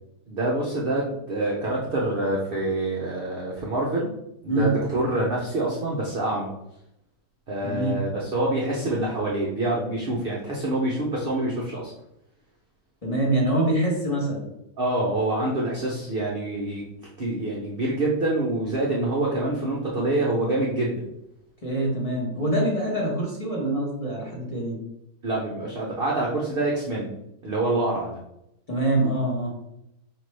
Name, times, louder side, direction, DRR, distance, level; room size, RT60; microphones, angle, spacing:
voice 1, 0.3-4.1 4.4-6.5 7.5-11.9 14.8-16.8 17.2-21.0 25.2-27.1 27.4-28.2, right 2 dB, 55° right, -4 dB, 0.6 m, -26 dB
voice 2, 7.6-8.0 13.0-14.5 21.6-24.8 28.7-29.5, right 1 dB, 25° left, -3 dB, 0.8 m, -25 dB
5.1 x 2.5 x 3.2 m, 0.82 s
omnidirectional pair, 1.8 m